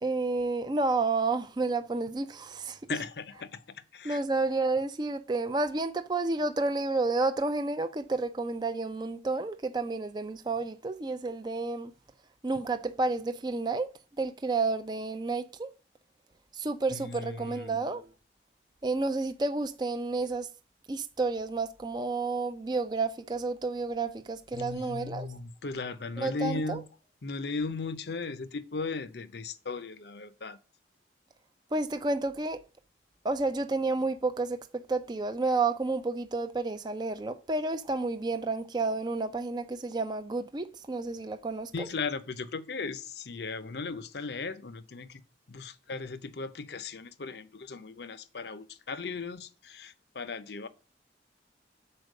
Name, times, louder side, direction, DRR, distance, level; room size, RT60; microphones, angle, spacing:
voice 1, 0.0-2.8 4.0-11.9 12.4-13.9 14.2-15.7 16.5-18.1 18.8-20.5 20.9-25.3 26.2-26.8 31.7-32.6 33.2-41.9, right 3 dB, 25° right, 0.4 m, -30 dB
voice 2, 2.9-4.2 16.9-17.8 24.5-26.8 27.2-30.6 41.7-45.2 45.5-50.7, left 4 dB, 70° left, 0.7 m, -37 dB
6.4 x 4.4 x 6.4 m
head